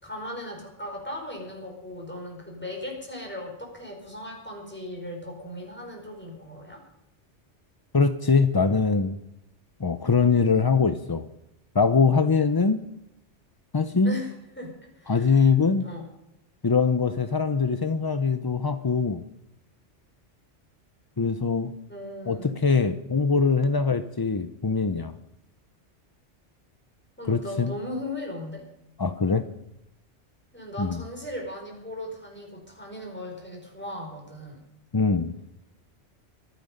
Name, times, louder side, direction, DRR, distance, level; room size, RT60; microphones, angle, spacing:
voice 1, 0.0-6.8 14.0-15.4 15.8-16.1 21.9-22.6 27.2-28.7 30.5-34.6, left 1 dB, 10° left, 0 dB, 5.0 m, -37 dB
voice 2, 7.9-9.2 9.8-11.3 11.7-12.9 13.7-14.1 15.1-15.8 16.6-19.2 21.2-21.7 22.3-25.1 27.3-27.7 29.0-29.4 30.8-31.0 34.9-35.3, left 5 dB, 30° left, 10 dB, 0.4 m, -22 dB
24.5 x 9.3 x 5.3 m, 0.85 s
omnidirectional pair, 1.2 m